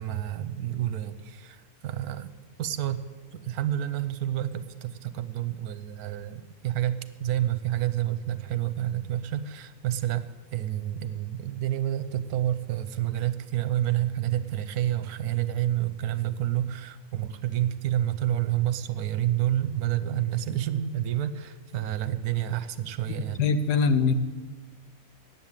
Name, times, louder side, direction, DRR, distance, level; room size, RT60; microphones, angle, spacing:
voice 1, 0.0-2.3 2.6-3.0 3.3-23.5, right 12 dB, 75° right, 13 dB, 1.1 m, -29 dB
voice 2, 23.4-24.1, left 5 dB, 90° left, 10 dB, 1.4 m, -22 dB
9.7 x 7.5 x 8.9 m, 1.3 s
omnidirectional pair, 1.7 m